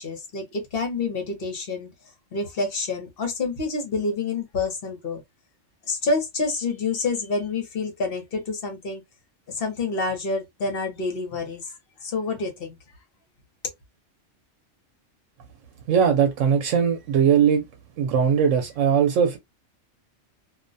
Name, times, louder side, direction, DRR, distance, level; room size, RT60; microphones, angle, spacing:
voice 1, 0.0-1.9 2.3-5.2 5.9-9.0 9.5-11.6 12.0-12.8, left 3 dB, 55° left, 1.0 m, -28 dB
voice 2, 15.9-17.6 18.0-19.4, right 7 dB, 85° right, 0.9 m, -20 dB
2.4 x 2.1 x 2.6 m
omnidirectional pair, 1.3 m